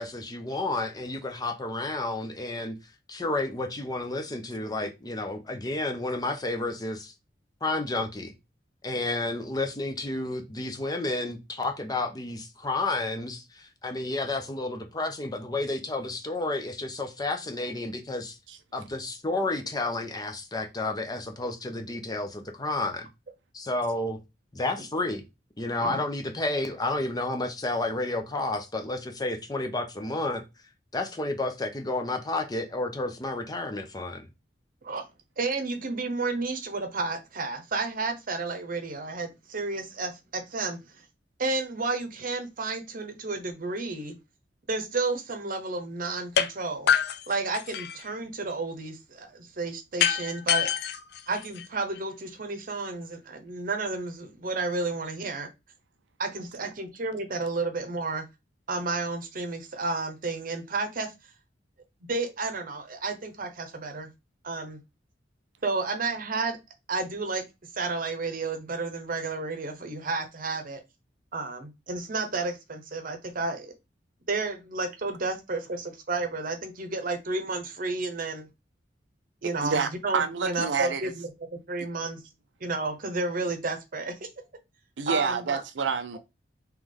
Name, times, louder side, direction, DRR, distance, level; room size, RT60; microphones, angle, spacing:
voice 1, 0.0-2.8 3.1-7.1 7.6-8.3 8.8-18.4 18.7-23.1 23.5-24.2 24.5-25.2 25.6-30.4 30.9-34.3, left 2 dB, 20° left, 0.7 m, -31 dB
voice 2, 35.4-41.0 41.4-44.2 44.7-46.9 47.3-50.7 51.3-55.5 56.2-58.3 58.7-61.1 62.1-64.1 64.4-64.8 65.6-66.6 66.9-67.4 67.7-70.8 71.3-73.7 74.3-78.5 79.4-82.2 82.6-84.2 85.1-85.6, right 3 dB, 50° right, 0.8 m, -31 dB
sound 1, 46.4-46.5 46.9-48.1 50.0-52.0, left 9 dB, 65° left, 0.4 m, -26 dB
voice 3, 79.6-81.1 85.0-86.2, right 6 dB, 85° right, 0.5 m, -28 dB
3.3 x 3.1 x 3.7 m
head